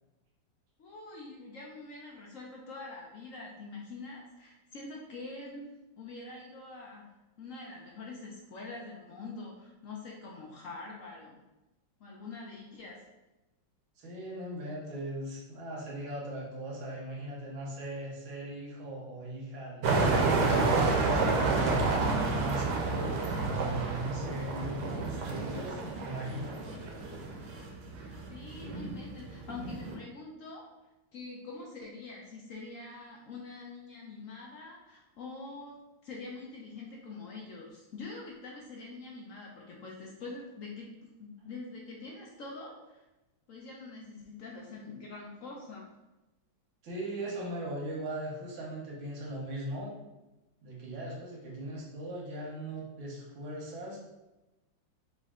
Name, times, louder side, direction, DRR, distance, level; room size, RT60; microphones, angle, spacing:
voice 1, 0.8-7.1 7.4-11.4 12.0-13.0 28.3-30.7 31.1-43.0 43.5-45.9, left 3 dB, 70° left, -2 dB, 0.8 m, -45 dB
voice 2, 14.0-21.9 22.3-26.7 46.8-49.9 50.6-54.0, right 1 dB, 90° right, -3 dB, 1.9 m, -39 dB
sound 1, 19.8-29.9, right 3 dB, 65° right, 1.2 m, -30 dB
5.1 x 2.6 x 3.7 m, 1.0 s
omnidirectional pair, 2.1 m